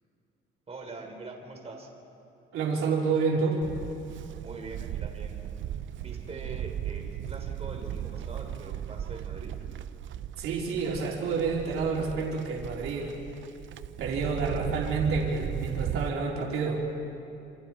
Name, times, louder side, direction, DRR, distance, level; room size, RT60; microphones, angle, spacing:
voice 1, 0.7-1.9 4.4-5.4 6.0-9.5, right 3 dB, 30° right, 1 dB, 3.7 m, -43 dB
voice 2, 2.5-3.6 10.4-13.1 14.0-16.8, right 4 dB, 90° right, -2 dB, 3.5 m, -29 dB
Livestock farm animals working animals, 3.6-16.1, right 11 dB, 65° right, 0.6 m, -37 dB
27.0 x 26.5 x 4.4 m, 2.9 s
cardioid pair, 105°, 21 cm